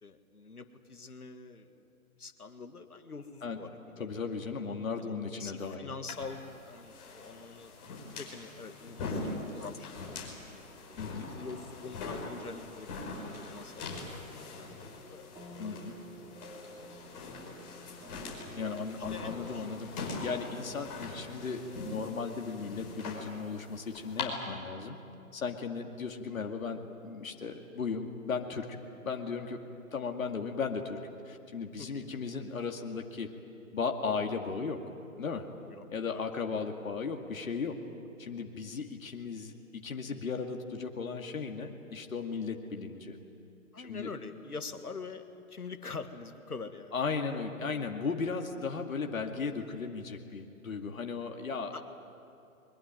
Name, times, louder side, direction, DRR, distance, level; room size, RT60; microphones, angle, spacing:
voice 1, 0.0-1.9 2.2-4.1 5.0-7.7 8.1-13.2 13.5-15.3 16.3-16.6 18.6-19.7 31.8-32.1 35.7-35.9 36.1-36.2 43.7-47.0 51.7-51.8, left 4 dB, 85° left, 8 dB, 2.0 m, -45 dB
voice 2, 4.0-5.9 11.0-11.3 15.6-15.9 18.6-25.0 25.3-29.6 29.9-33.3 33.7-34.8 35.2-35.5 35.9-37.7 38.2-43.2 43.8-44.1 46.9-51.7, left 5 dB, 65° left, 3 dB, 2.4 m, -36 dB
sound 1, 6.1-24.2, left 3 dB, 30° left, 5.2 m, -42 dB
Relaxing Piano Guitar, 14.5-22.3, right 1 dB, 10° right, 1.3 m, -52 dB
23.0 x 22.0 x 9.5 m, 2.7 s
figure-of-eight pair, 145°, 44 cm